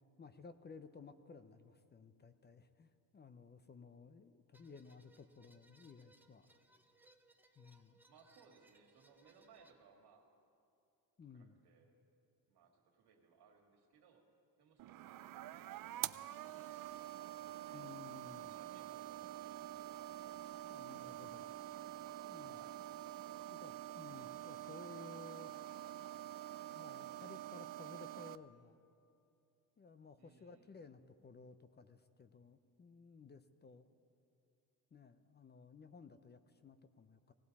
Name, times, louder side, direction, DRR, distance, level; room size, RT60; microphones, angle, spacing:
voice 1, 0.2-6.6 7.6-8.0 11.2-11.6 17.7-18.6 20.7-21.5 22.3-22.6 23.5-25.5 26.7-28.8 29.8-33.9 34.9-37.3, left 5 dB, 25° left, 11 dB, 0.5 m, -57 dB
sound 1, 4.5-9.7, right 2 dB, 5° right, 0.7 m, -69 dB
voice 2, 8.0-10.4 11.3-12.0 12.5-14.3 14.6-17.9 18.3-20.3 22.3-22.8 30.2-30.8, right 5 dB, 90° right, 1 dB, 2.3 m, -67 dB
sound 2, 14.8-28.4, right 14 dB, 60° right, 0.5 m, -47 dB
18.0 x 17.5 x 4.2 m, 2.5 s
cardioid pair, 130°, 38 cm